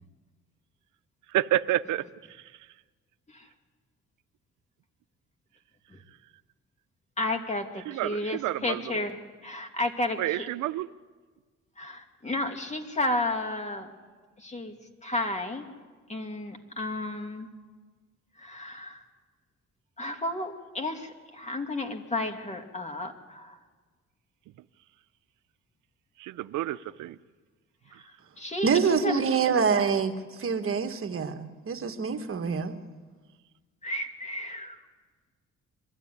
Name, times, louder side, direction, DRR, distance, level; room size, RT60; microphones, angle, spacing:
voice 1, 1.3-2.1 7.9-8.8 10.2-10.9 26.2-27.2, right 14 dB, 80° right, 13 dB, 0.6 m, -29 dB
voice 2, 7.2-10.5 11.8-13.9 14.4-14.7 15.0-15.7 16.1-17.5 18.4-19.0 20.0-23.6 28.4-29.2 33.8-34.8, left 2 dB, 25° left, 4 dB, 2.5 m, -32 dB
voice 3, 28.6-32.7, right 6 dB, 45° right, 6 dB, 1.6 m, -26 dB
24.0 x 13.0 x 9.8 m, 1.4 s
cardioid pair, 90°, 30 cm